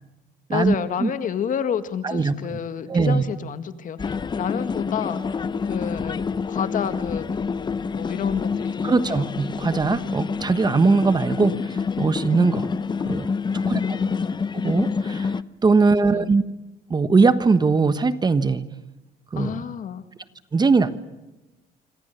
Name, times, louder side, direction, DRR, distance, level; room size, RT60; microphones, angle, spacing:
voice 1, 0.5-7.4 7.9-9.3 13.6-14.4 15.8-16.3 19.4-20.0, left 8 dB, 50° left, 10 dB, 1.9 m, -30 dB
voice 2, 2.9-3.2 8.8-12.7 13.0-13.3 13.7-13.8 14.5-15.3 15.6-16.4 16.9-18.6 19.3-19.6 20.5-21.0, right 4 dB, 25° right, 12 dB, 1.3 m, -20 dB
sound 1, 4.0-15.4, left 5 dB, 25° left, 0.8 m, -27 dB
26.5 x 26.0 x 6.9 m, 1.0 s
cardioid pair, 110°, 17 cm